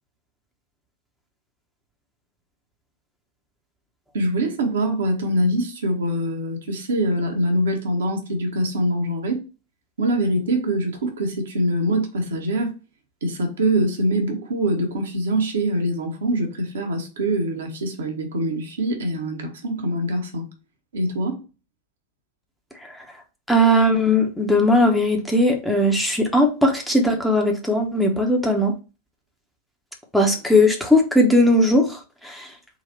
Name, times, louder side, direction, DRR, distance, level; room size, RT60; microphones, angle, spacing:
voice 1, 4.1-9.4 10.0-12.7 13.2-20.4 20.9-21.4, right 1 dB, 65° right, 1.0 m, -24 dB
voice 2, 23.5-28.7 30.1-32.5, left 1 dB, ahead, 0.9 m, -18 dB
3.9 x 2.4 x 4.3 m
figure-of-eight pair, 90°, 0 cm